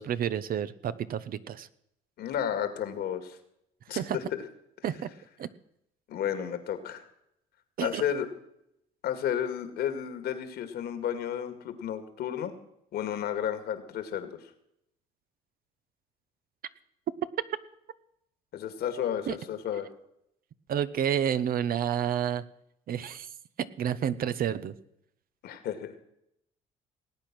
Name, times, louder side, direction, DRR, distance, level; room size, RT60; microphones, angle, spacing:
voice 1, 0.0-1.7 3.9-4.2 4.8-5.1 5.4-5.5 7.8-8.0 19.3-19.4 20.7-22.4 22.9-23.3 23.6-24.7, right 9 dB, 55° right, 14 dB, 0.9 m, -30 dB
voice 2, 2.2-3.4 3.9-4.2 6.1-7.0 7.8-8.3 9.0-12.5 12.9-14.3 18.5-19.9 25.4-25.9, left 9 dB, 70° left, 9 dB, 2.1 m, -32 dB
19.0 x 8.8 x 6.2 m, 0.77 s
supercardioid pair, 80°, 17 cm